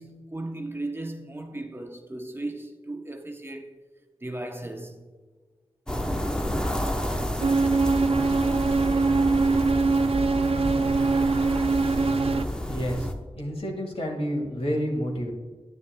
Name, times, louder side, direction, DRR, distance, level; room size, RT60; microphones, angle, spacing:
voice 1, 0.0-3.7 4.2-5.0, right 2 dB, 20° right, 0.7 m, -37 dB
sound 1, 5.9-13.1, equal, 5° left, 0.8 m, -30 dB
sound 2, 7.4-12.5, right 4 dB, 60° right, 0.4 m, -23 dB
voice 2, 12.7-13.1 13.4-15.3, equal, 65° left, 1.8 m, -29 dB
10.0 x 9.8 x 2.2 m
wide cardioid pair, 80°, 11 cm